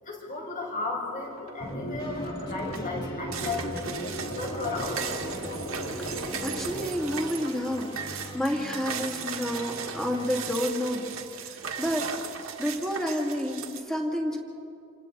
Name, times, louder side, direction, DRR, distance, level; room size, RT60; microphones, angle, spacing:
voice 1, 0.0-3.9 4.3-5.0, left 3 dB, 40° left, -2 dB, 5.4 m, -34 dB
sound 1, 1.4-1.7 2.2-13.8, right 7 dB, 80° right, 1.7 m, -37 dB
sound 2, 1.6-6.9, equal, 65° left, 2.8 m, -36 dB
sound 3, 2.0-10.3, equal, 20° left, 2.3 m, -43 dB
voice 2, 6.0-11.1 11.4-12.1 12.6-14.4, equal, ahead, -1 dB, 2.5 m, -30 dB
28.5 x 28.0 x 4.1 m, 2.7 s
head